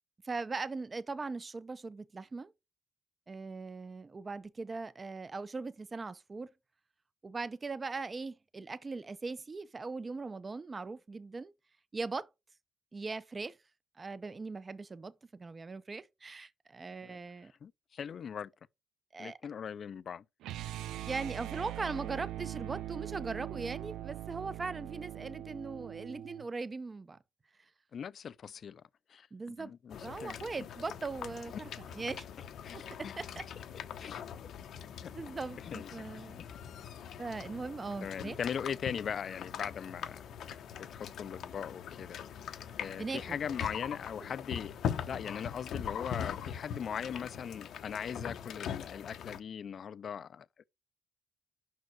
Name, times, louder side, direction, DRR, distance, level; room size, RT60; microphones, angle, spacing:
voice 1, 0.2-2.5 3.3-6.5 7.2-11.5 11.9-12.3 12.9-13.6 14.0-17.5 19.1-19.4 21.1-27.2 29.3-29.7 30.0-32.3 32.7-33.5 35.1-36.4 37.2-38.4 43.0-43.2 43.6-43.7, right 4 dB, 30° right, 0.6 m, -40 dB
voice 2, 17.6-18.5 19.2-20.2 27.9-28.8 29.1-30.7 31.5-31.6 32.6-33.1 34.0-34.2 35.0-35.1 35.7-35.9 36.2-36.3 38.0-40.2 40.8-42.2 42.8-44.7 45.1-50.6, left 7 dB, 55° left, 0.4 m, -40 dB
sound 1, 20.4-26.5, right 13 dB, 85° right, 0.3 m, -41 dB
sound 2, 29.9-49.4, left 8 dB, 70° left, 0.8 m, -42 dB
5.7 x 4.6 x 6.2 m
cardioid pair, 90°, 0 cm